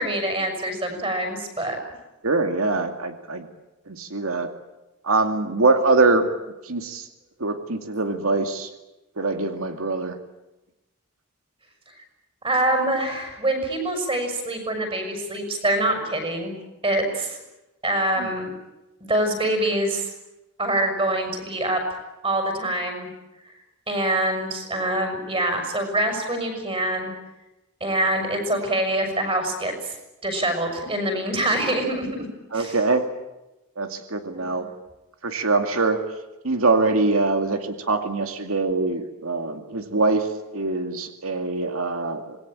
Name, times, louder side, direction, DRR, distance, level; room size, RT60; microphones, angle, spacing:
voice 1, 0.0-1.8 12.4-16.5 16.8-17.4 17.8-18.5 19.0-20.1 20.6-21.8 22.2-23.1 23.9-27.1 27.8-29.9 30.2-32.2 32.5-32.8 34.3-34.6, right 1 dB, 25° right, 5 dB, 6.4 m, -25 dB
voice 2, 2.2-3.5 3.9-4.5 5.0-6.2 6.6-7.1 7.4-8.7 9.2-10.1 18.2-18.3 32.5-33.0 33.8-34.7 35.2-36.0 36.4-40.3 40.5-42.4, right 3 dB, 85° right, 6 dB, 2.4 m, -23 dB
26.5 x 20.5 x 9.0 m, 0.99 s
head